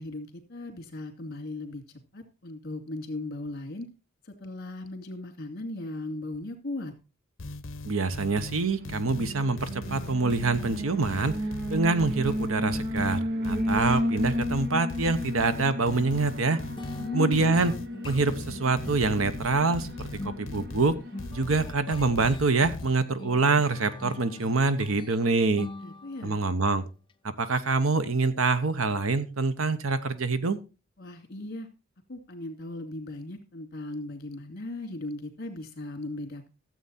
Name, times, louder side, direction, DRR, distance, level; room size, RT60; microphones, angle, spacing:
voice 1, 0.0-1.8 2.1-3.9 4.2-6.9 16.9-17.5 25.8-26.4 31.0-31.7 32.1-36.5, left 2 dB, 50° left, 4 dB, 2.7 m, -37 dB
sound 1, 7.4-22.9, left 2 dB, 65° left, 0.9 m, -39 dB
voice 2, 7.8-11.4 11.7-16.6 17.1-17.7 18.0-21.0 21.3-25.7 26.2-26.8 27.4-30.6, right 3 dB, 80° right, 12 dB, 1.0 m, -25 dB
Alarm, 8.3-21.7, equal, 50° right, 1.1 m, -34 dB
sound 2, 16.8-26.4, left 2 dB, 25° left, 0.6 m, -43 dB
13.5 x 8.0 x 4.2 m, 0.30 s
head